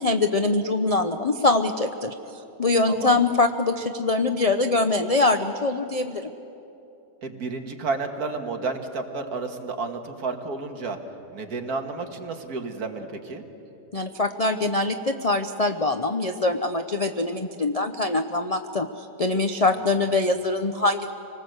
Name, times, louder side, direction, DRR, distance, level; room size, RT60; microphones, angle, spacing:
voice 1, 0.0-2.1 2.6-6.3 13.9-21.1, left 2 dB, 75° left, 7 dB, 0.3 m, -23 dB
voice 2, 2.9-3.2 7.2-11.0 11.3-13.4 19.8-20.0, right 3 dB, 60° right, 5 dB, 2.0 m, -31 dB
26.5 x 19.5 x 8.0 m, 3.0 s
omnidirectional pair, 1.8 m